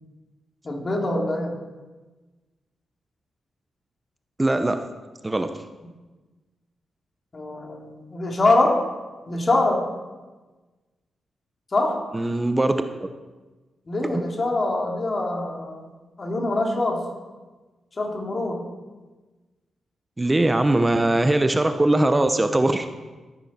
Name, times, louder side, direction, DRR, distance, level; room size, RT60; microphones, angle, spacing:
voice 1, 0.6-1.5 7.3-8.8 9.3-9.9 11.7-12.0 13.9-15.9 16.2-17.0 18.0-18.6, left 2 dB, 45° left, 0 dB, 2.7 m, -24 dB
voice 2, 4.4-4.8 5.2-5.5 12.1-13.1 14.1-14.2 20.2-22.9, right 2 dB, 25° right, 8 dB, 0.8 m, -21 dB
13.0 x 9.9 x 4.3 m, 1.2 s
supercardioid pair, 45°, 0 cm